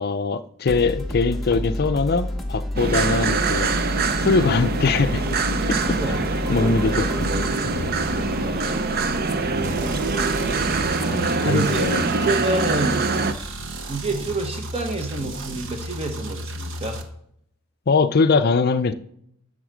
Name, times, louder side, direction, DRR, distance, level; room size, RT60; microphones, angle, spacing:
voice 1, 0.0-3.7 4.2-5.2 5.7-6.0 6.5-8.0 11.1-12.0 17.9-18.9, left 4 dB, 45° left, 10 dB, 0.5 m, -22 dB
sound 1, 0.7-14.1, left 1 dB, ahead, 0.9 m, -31 dB
sound 2, 2.8-13.3, right 4 dB, 45° right, 0.5 m, -24 dB
voice 2, 5.8-6.7 8.2-9.0 9.4-10.0 11.4-13.1 13.9-17.0, right 2 dB, 30° right, 4 dB, 1.3 m, -29 dB
sound 3, 9.6-17.0, right 1 dB, 60° right, 1.0 m, -34 dB
12.0 x 4.0 x 6.2 m, 0.70 s
head